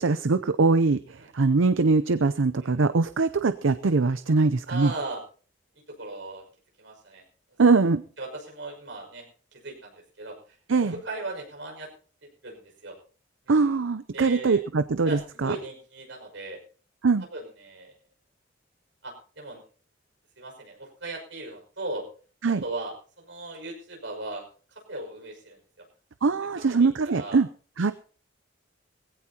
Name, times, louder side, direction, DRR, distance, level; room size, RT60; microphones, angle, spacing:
voice 1, 0.0-4.9 7.6-8.0 10.7-10.9 13.5-15.6 17.0-17.2 22.4-22.6 26.2-27.5 27.8-27.9, right 4 dB, 85° right, 13 dB, 0.6 m, -22 dB
voice 2, 4.7-5.2 6.0-6.4 6.8-7.2 8.2-9.3 9.5-10.4 10.8-11.9 12.4-13.0 13.4-13.7 14.1-14.6 15.0-16.6 17.3-17.9 19.0-19.6 20.4-22.1 22.6-24.5 24.7-25.9 26.7-27.4, right 2 dB, 70° right, 1 dB, 5.9 m, -37 dB
20.0 x 16.0 x 2.9 m, 0.40 s
head